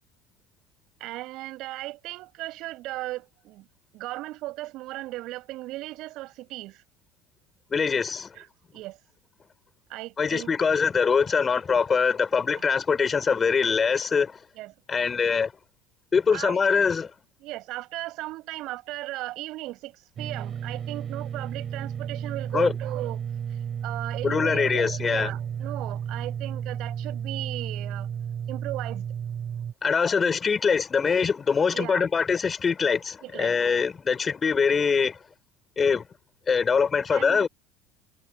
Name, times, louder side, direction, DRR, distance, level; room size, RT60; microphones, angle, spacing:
voice 1, 1.0-3.7 3.9-6.8 8.3-8.5 8.7-9.0 9.9-10.5 14.6-14.7 16.3-16.6 17.4-23.2 23.5-28.1 28.5-29.1 31.7-32.1 33.2-33.5 37.1-37.5, right 18 dB, 60° right, 7.6 m, -36 dB
voice 2, 7.7-8.3 10.2-14.4 14.9-15.5 16.1-17.1 22.5-22.7 24.2-25.3 29.8-35.2 35.8-36.1 36.5-37.5, left 5 dB, 30° left, 5.7 m, -23 dB
sound 1, 20.2-29.7, right 8 dB, 40° right, 7.9 m, -33 dB
hypercardioid pair, 75°, 0 cm